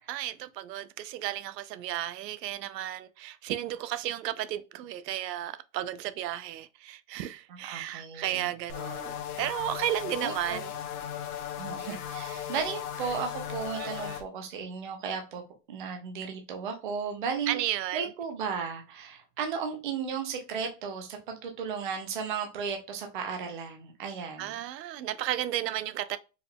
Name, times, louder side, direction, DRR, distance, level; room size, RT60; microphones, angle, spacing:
voice 1, 0.1-10.7 13.8-14.2 17.5-18.1 24.4-26.2, right 13 dB, 80° right, 0.6 m, -33 dB
voice 2, 7.5-8.5 10.2-10.6 11.6-15.4 15.7-17.6 17.9-24.6, right 6 dB, 35° right, 0.4 m, -35 dB
sound 1, 8.7-14.2, left 9 dB, 65° left, 0.9 m, -37 dB
4.6 x 3.4 x 2.2 m
supercardioid pair, 180°, 49 cm